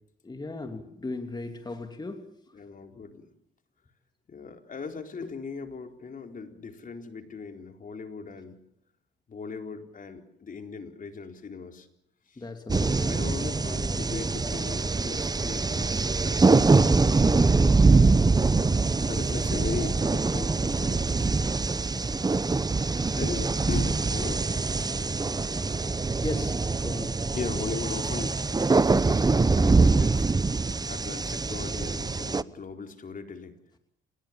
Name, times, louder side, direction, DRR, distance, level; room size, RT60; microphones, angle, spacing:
voice 1, 0.2-2.3 12.4-13.2 26.2-27.3, left 2 dB, 20° left, 6 dB, 2.8 m, -36 dB
voice 2, 2.5-3.3 4.3-8.6 9.3-11.9 12.3-12.5 12.8-18.1 19.1-21.4 21.8-21.9 22.7-24.5 25.3-25.4 27.3-33.5, left 5 dB, 45° left, 6 dB, 4.2 m, -39 dB
sound 1, 12.7-32.4, right 3 dB, 20° right, 1.0 m, -24 dB
29.5 x 20.5 x 7.4 m, 0.73 s
cardioid pair, 90°, 20 cm